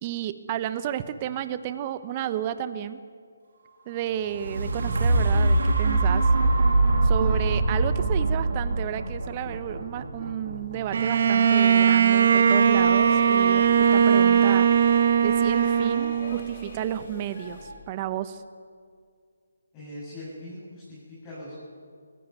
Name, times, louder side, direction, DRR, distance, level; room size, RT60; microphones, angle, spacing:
voice 1, 0.0-3.0 3.9-6.3 7.0-14.7 15.2-18.4, right 11 dB, 25° right, 12 dB, 0.9 m, -32 dB
sound 1, 4.2-12.2 12.8-12.9, right 2 dB, 70° right, 3.5 m, -24 dB
Bowed string instrument, 10.9-16.7, right 7 dB, 50° right, 1.3 m, -20 dB
Speech / Shout / Subway metro underground, 12.5-17.7, left 2 dB, 45° left, 6.8 m, -42 dB
voice 2, 19.7-21.5, left 1 dB, 20° left, -8 dB, 7.8 m, -41 dB
19.5 x 15.0 x 9.5 m, 2.1 s
figure-of-eight pair, 155°, 0 cm